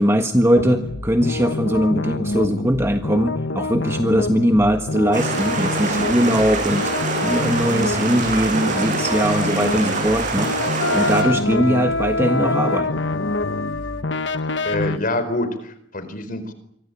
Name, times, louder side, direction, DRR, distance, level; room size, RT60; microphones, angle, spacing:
voice 1, 0.0-6.9 7.2-13.0, equal, 15° right, 5 dB, 1.6 m, -20 dB
sound 1, 0.5-15.0, left 2 dB, 65° left, 1.3 m, -27 dB
sound 2, 5.1-11.2, right 3 dB, 45° right, 7.0 m, -25 dB
Wind instrument woodwind instrument, 10.8-14.0, left 2 dB, 90° left, 1.1 m, -25 dB
voice 2, 14.6-16.5, left 1 dB, 45° left, 11 dB, 4.5 m, -26 dB
28.0 x 24.5 x 8.7 m, 0.71 s
head